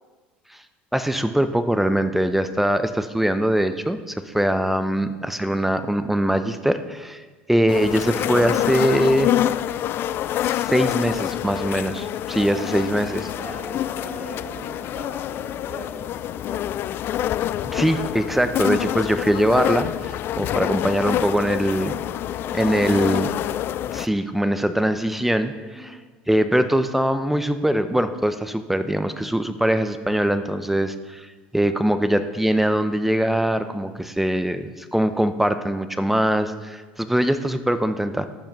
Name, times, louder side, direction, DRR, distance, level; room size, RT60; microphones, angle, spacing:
voice 1, 0.9-9.3 10.4-13.3 17.7-22.0 22.5-23.3 23.9-26.0 26.3-31.3 31.5-38.3, right 1 dB, 5° right, 10 dB, 0.7 m, -22 dB
sound 1, 7.7-24.1, left 12 dB, 50° left, 0.4 m, -26 dB
voice 2, 12.4-13.1 13.4-16.9 22.3-23.8 25.7-26.0 31.5-32.0, equal, 20° right, -7 dB, 3.4 m, -41 dB
11.5 x 8.8 x 5.3 m, 1.3 s
hypercardioid pair, 80°, 5 cm